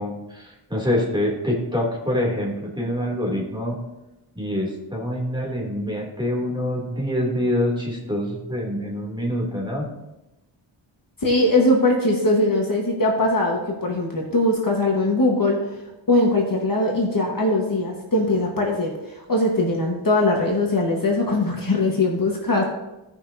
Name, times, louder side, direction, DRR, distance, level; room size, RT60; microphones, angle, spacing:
voice 1, 0.0-3.8 4.3-9.9, left 1 dB, 10° right, -2 dB, 2.9 m, -25 dB
voice 2, 11.2-15.6 16.1-22.6, left 2 dB, 40° left, -1 dB, 1.5 m, -21 dB
16.5 x 6.0 x 2.8 m, 0.97 s
wide cardioid pair, 85°, 49 cm